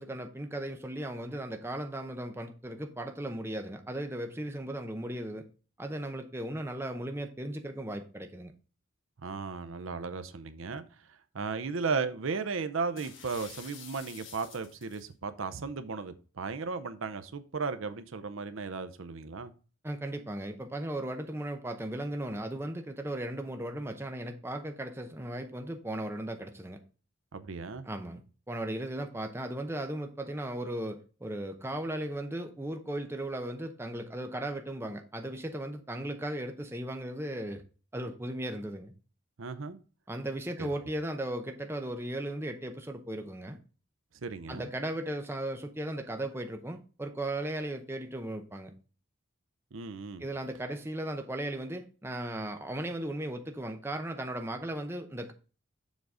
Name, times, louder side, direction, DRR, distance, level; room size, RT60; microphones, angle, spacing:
voice 1, 0.0-5.5 5.8-8.5 19.8-26.8 27.8-37.6 37.9-38.9 40.1-43.6 44.5-48.7 50.2-55.3, right 1 dB, 10° right, 0.6 m, -36 dB
voice 2, 9.2-10.8 11.3-19.5 27.3-27.9 39.4-39.8 40.6-40.7 44.2-44.7 49.7-50.2, right 4 dB, 70° right, 0.6 m, -35 dB
sound 1, 13.0-15.1, left 7 dB, 55° left, 1.2 m, -49 dB
7.1 x 3.9 x 4.9 m
head